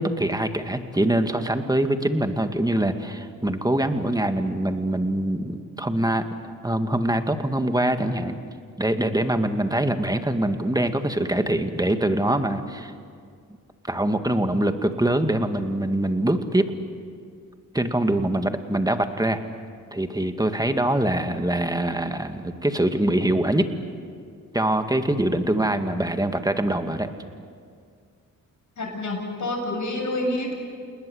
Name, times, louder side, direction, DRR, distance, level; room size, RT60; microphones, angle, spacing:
voice 1, 0.0-8.4 8.8-12.9 13.8-16.7 17.7-19.4 19.9-23.7 24.5-27.1, right 1 dB, 10° right, 7 dB, 2.0 m, -24 dB
voice 2, 28.8-30.5, left 1 dB, 55° left, 1 dB, 7.3 m, -28 dB
29.0 x 20.0 x 8.0 m, 2.1 s
cardioid pair, 60°, 34 cm